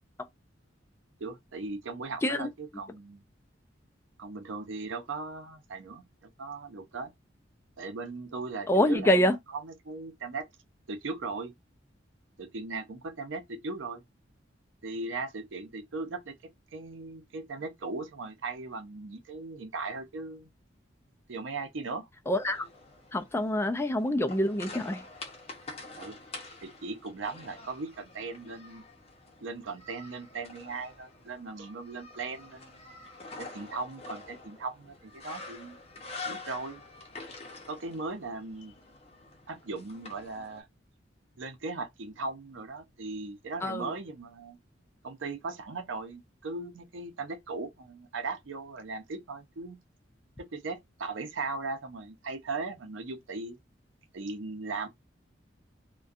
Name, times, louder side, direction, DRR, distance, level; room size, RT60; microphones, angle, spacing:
voice 1, 1.2-3.2 4.2-7.1 7.8-9.2 9.5-10.5 10.9-11.5 12.4-14.0 14.8-20.5 21.3-22.1 26.0-26.2 26.6-28.8 29.4-32.8 33.4-35.8 36.2-36.8 37.7-38.7 39.5-40.7 41.4-44.6 45.0-49.8 50.4-53.6 54.1-54.9, right 3 dB, 85° right, 0.6 m, -38 dB
voice 2, 8.7-9.3 22.3-22.6 23.1-25.0 43.6-43.9, left 1 dB, 15° left, 0.3 m, -26 dB
sound 1, 22.3-40.6, left 3 dB, 35° left, 0.7 m, -47 dB
2.6 x 2.2 x 2.4 m
head